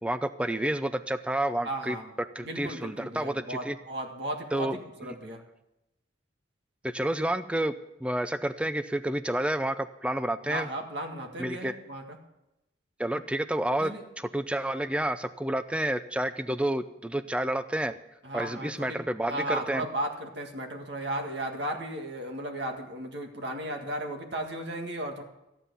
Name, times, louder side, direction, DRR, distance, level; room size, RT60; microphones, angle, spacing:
voice 1, 0.0-2.0 2.4-3.8 4.5-4.8 6.8-7.7 8.0-10.7 11.4-11.7 13.0-13.9 14.2-18.0 18.3-19.9, right 1 dB, 5° right, 12 dB, 0.4 m, -29 dB
voice 2, 1.6-2.1 2.4-5.4 10.4-12.2 13.8-14.0 18.2-19.0 19.3-25.2, right 1 dB, 65° right, 3 dB, 1.9 m, -35 dB
14.5 x 9.0 x 6.9 m, 0.90 s
head